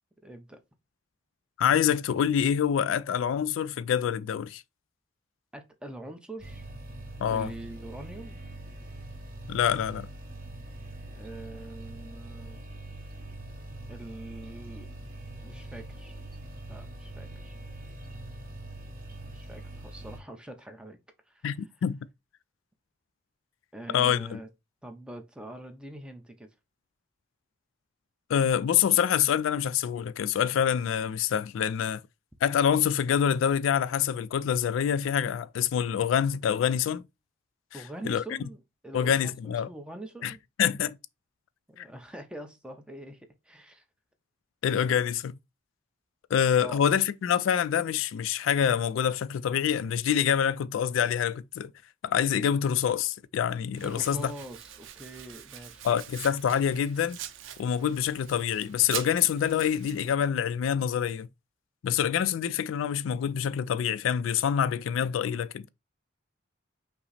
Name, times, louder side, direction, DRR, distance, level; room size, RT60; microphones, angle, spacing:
voice 1, 0.2-0.6 1.7-1.8 5.5-6.7 7.3-8.4 11.1-12.6 13.9-14.9 15.4-16.2 16.7-17.6 19.3-21.0 21.3-21.7 23.7-24.5 24.8-26.5 37.7-40.4 41.7-43.8 46.6-46.8 53.8-55.9, right 1 dB, 5° right, 0.5 m, -44 dB
voice 2, 1.6-4.6 7.2-7.5 9.5-10.1 21.4-21.6 21.8-22.0 23.9-24.4 28.3-32.0 32.4-37.0 38.0-38.2 38.9-39.7 40.2-40.3 40.6-41.0 41.8-41.9 44.6-45.3 46.3-51.7 52.0-54.3 55.8-57.2 57.6-61.3 61.8-65.7, left 8 dB, 80° left, 0.3 m, -26 dB
sound 1, 6.4-20.2, right 2 dB, 45° right, 1.2 m, -43 dB
Domestic sounds home sounds, 53.7-60.1, right 10 dB, 80° right, 0.5 m, -43 dB
5.6 x 2.0 x 4.0 m
head